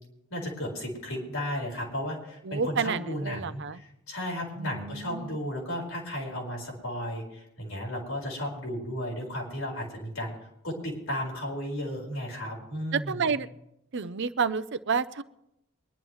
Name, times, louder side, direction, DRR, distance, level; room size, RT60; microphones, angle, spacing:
voice 1, 0.3-10.3 10.6-13.3, equal, 85° left, -1 dB, 4.6 m, -34 dB
voice 2, 2.4-3.8 4.6-5.3 12.9-13.5 13.9-15.2, right 5 dB, 60° right, 13 dB, 0.6 m, -30 dB
24.0 x 11.0 x 3.1 m, 0.83 s
head